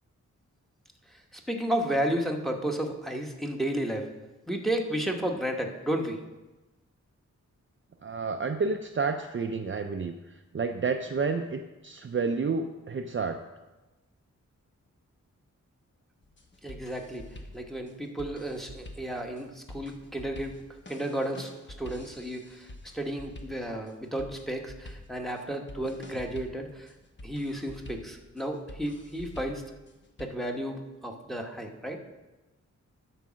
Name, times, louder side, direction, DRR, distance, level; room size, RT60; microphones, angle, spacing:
voice 1, 1.1-4.1 4.5-6.2 16.6-17.2 17.5-20.6 20.9-21.5 21.8-26.9 27.2-29.6 30.2-32.0, right 1 dB, ahead, 1 dB, 1.1 m, -32 dB
voice 2, 8.0-10.1 10.5-13.4, right 4 dB, 40° right, 6 dB, 0.5 m, -30 dB
sound 1, 16.2-30.2, left 1 dB, 40° left, 1.0 m, -47 dB
11.5 x 4.8 x 6.2 m, 1.1 s
wide cardioid pair, 105°, 30 cm